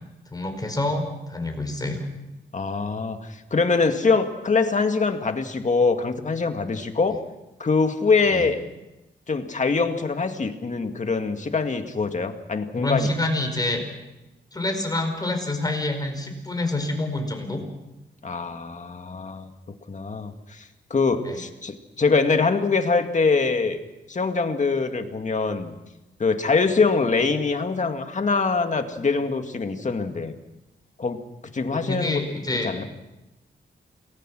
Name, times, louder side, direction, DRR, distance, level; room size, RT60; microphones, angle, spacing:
voice 1, 0.3-2.1 8.3-8.4 12.8-13.8 14.5-17.6 21.2-21.4 31.7-32.7, left 2 dB, 20° left, 4 dB, 4.7 m, -27 dB
voice 2, 2.5-7.2 7.6-8.6 9.3-13.1 18.2-19.5 19.9-20.6 20.9-23.8 24.1-25.7 26.2-30.3 31.0-31.2 31.5-32.8, left 4 dB, 40° left, 6 dB, 2.0 m, -23 dB
28.0 x 19.5 x 6.3 m, 0.96 s
wide cardioid pair, 120°, 19 cm